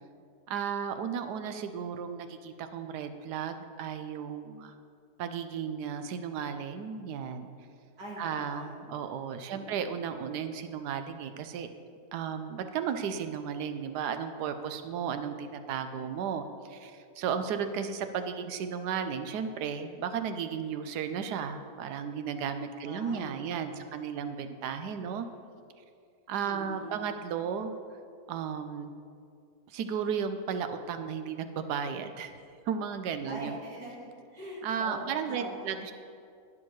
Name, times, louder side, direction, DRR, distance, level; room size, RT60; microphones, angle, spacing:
voice 1, 0.5-4.7 5.2-7.5 8.2-11.7 12.1-25.3 26.3-27.8 28.3-28.9 29.7-32.4 32.7-33.6 34.6-35.9, right 7 dB, 85° right, 8 dB, 1.2 m, -34 dB
voice 2, 8.0-8.9 9.5-9.9 22.8-24.1 26.4-27.1 33.3-35.7, right 1 dB, 70° right, -4 dB, 2.3 m, -43 dB
11.0 x 10.0 x 3.2 m, 2.3 s
omnidirectional pair, 1.7 m